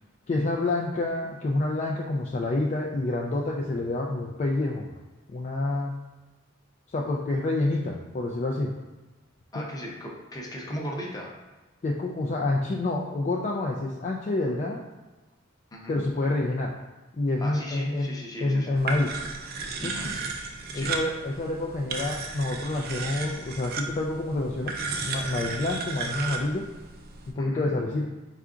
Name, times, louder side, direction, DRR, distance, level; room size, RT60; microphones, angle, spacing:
voice 1, 0.3-5.0 5.3-5.9 6.9-8.7 9.6-9.7 11.8-14.8 15.9-16.7 17.2-18.1 18.4-19.1 19.8-19.9 20.7-24.8 25.0-26.7 27.3-28.1, left 2 dB, 35° left, -1 dB, 0.3 m, -28 dB
voice 2, 9.5-11.3 15.7-16.0 17.4-18.8 19.8-20.1 20.7-21.0 27.4-27.7, equal, 20° left, -2 dB, 0.7 m, -36 dB
sound 1, 18.8-27.3, right 4 dB, 50° right, 0.4 m, -34 dB
4.4 x 2.4 x 3.7 m, 1.2 s
head